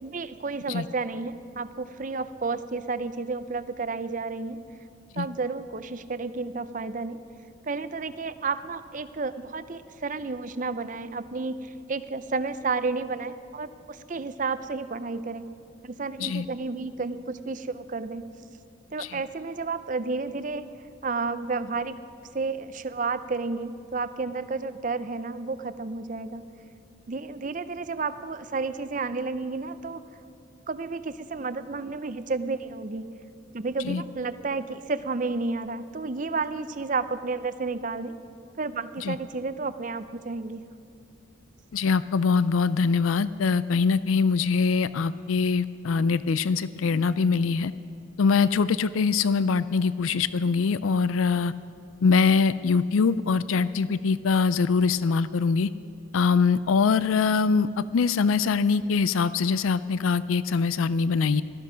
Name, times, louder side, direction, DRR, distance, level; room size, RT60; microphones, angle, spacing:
voice 1, 0.0-4.6 5.2-7.2 7.7-15.5 15.8-18.3 18.9-20.7 21.0-22.0 22.3-26.4 27.1-30.0 30.7-33.2 33.5-38.2 38.6-40.7, right 4 dB, 40° right, 12 dB, 0.5 m, -31 dB
voice 2, 41.7-47.7 48.2-51.5 52.0-55.7 56.1-61.4, left 5 dB, 85° left, 16 dB, 0.4 m, -23 dB
17.5 x 14.0 x 5.1 m, 2.6 s
head